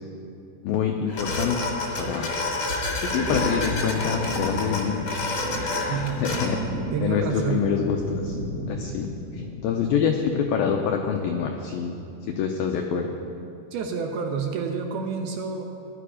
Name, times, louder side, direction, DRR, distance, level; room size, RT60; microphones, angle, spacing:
voice 1, 0.6-1.6 2.0-2.3 3.0-5.3 6.2-6.6 7.0-8.4 8.7-12.0 12.3-13.1, left 7 dB, 90° left, 3 dB, 2.0 m, -26 dB
sound 1, 1.1-6.5, left 2 dB, 55° left, 1.4 m, -29 dB
sound 2, 3.1-9.9, equal, 55° right, 1.9 m, -34 dB
voice 2, 5.9-7.7 13.7-15.7, right 6 dB, 75° right, 3 dB, 2.5 m, -29 dB
17.0 x 11.5 x 4.9 m, 2.7 s
omnidirectional pair, 5.1 m